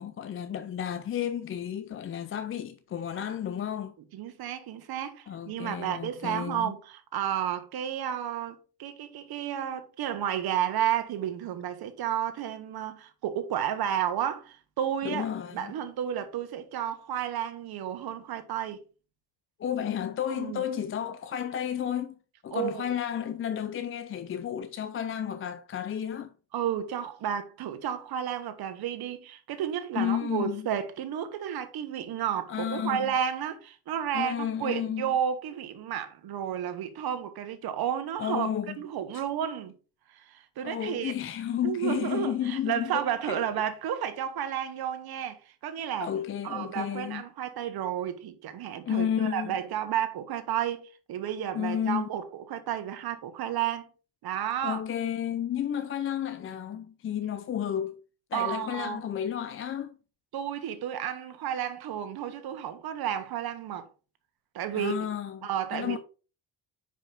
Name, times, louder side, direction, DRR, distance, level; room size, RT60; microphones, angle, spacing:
voice 1, 0.0-4.0 5.3-6.7 15.0-15.7 19.6-22.2 22.4-26.3 30.0-30.7 32.5-33.1 34.1-35.1 38.2-38.8 39.1-39.2 40.6-43.4 46.0-47.2 48.9-49.6 51.5-52.1 54.6-58.0 58.3-60.0 64.7-66.0, left 9 dB, 30° left, 0.4 m, -32 dB
voice 2, 4.1-15.3 15.5-18.8 20.4-20.6 22.5-22.9 26.5-38.5 38.8-39.7 40.1-41.1 41.6-46.1 46.4-53.9 54.2-54.8 58.3-59.0 60.3-63.9 64.5-64.9 65.4-66.0, right 10 dB, 60° right, 1.1 m, -32 dB
5.6 x 5.0 x 3.8 m
cardioid pair, 110°, 41 cm